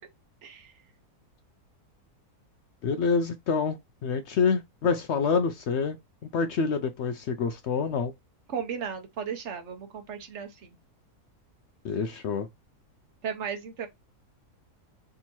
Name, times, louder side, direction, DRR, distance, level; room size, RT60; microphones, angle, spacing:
voice 1, 0.4-0.7 8.5-10.8 13.2-13.9, right 7 dB, 55° right, 1.1 m, -35 dB
voice 2, 2.8-6.0 6.3-8.1 11.8-12.5, left 5 dB, 65° left, 0.7 m, -27 dB
3.6 x 2.9 x 4.3 m
omnidirectional pair, 1.6 m